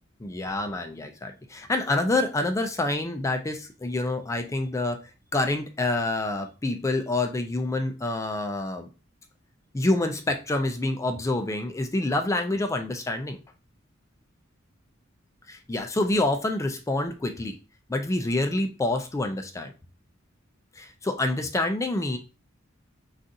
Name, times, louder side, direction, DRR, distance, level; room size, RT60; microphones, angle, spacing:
voice 1, 0.2-5.0 5.3-8.9 9.7-13.4 15.5-17.5 17.9-19.7 20.8-22.2, left 2 dB, 15° left, 5 dB, 0.3 m, -27 dB
3.9 x 2.4 x 2.6 m, 0.32 s
head